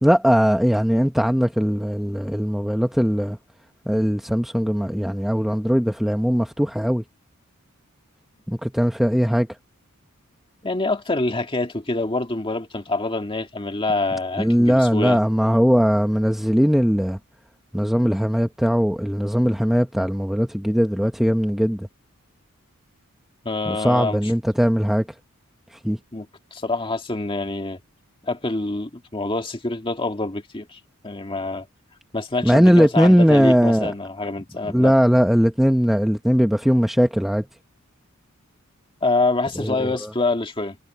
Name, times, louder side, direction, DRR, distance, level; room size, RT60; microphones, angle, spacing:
voice 1, 0.0-3.4 3.9-7.0 8.5-9.5 14.4-17.2 17.7-21.9 23.7-25.0 25.8-26.0 32.4-33.9 34.7-37.4 39.6-40.1, equal, ahead, 0.7 m, -19 dB
voice 2, 10.6-15.2 23.4-24.3 26.1-27.8 28.2-31.7 32.1-34.9 39.0-40.8, left 2 dB, 25° left, 2.0 m, -26 dB
head